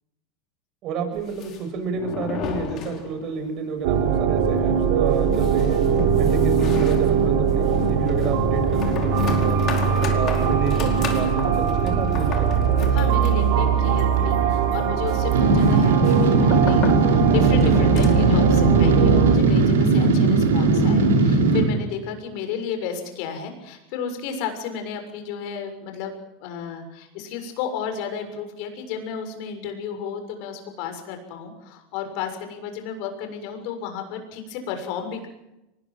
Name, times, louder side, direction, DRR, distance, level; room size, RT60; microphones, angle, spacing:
voice 1, 0.8-5.8 6.2-9.6 10.1-12.5, right 6 dB, 50° right, 7 dB, 6.9 m, -30 dB
sound 1, 1.1-3.5 3.8-3.9 4.2-4.3 4.7-18.4, left 6 dB, 45° left, 5.0 m, -35 dB
sound 2, 3.8-19.3, right 7 dB, 70° right, 5.5 m, -21 dB
voice 2, 12.9-35.3, left 7 dB, 65° left, 6 dB, 6.7 m, -32 dB
sound 3, 15.3-21.6, right 3 dB, 85° right, 5.4 m, -18 dB
24.0 x 21.0 x 7.7 m, 0.91 s
hypercardioid pair, 100°, 0 cm